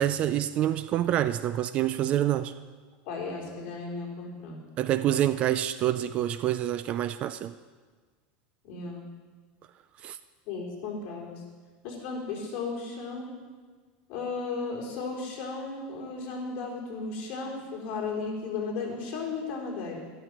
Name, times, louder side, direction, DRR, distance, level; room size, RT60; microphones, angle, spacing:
voice 1, 0.0-2.5 4.8-7.5 10.0-10.2, right 12 dB, 30° right, 13 dB, 0.3 m, -27 dB
voice 2, 3.1-4.6 8.6-9.0 10.5-11.4 11.8-13.3 14.1-20.0, left 4 dB, 40° left, -3 dB, 4.0 m, -35 dB
12.5 x 11.5 x 6.2 m, 1.5 s
supercardioid pair, 175°, 4 cm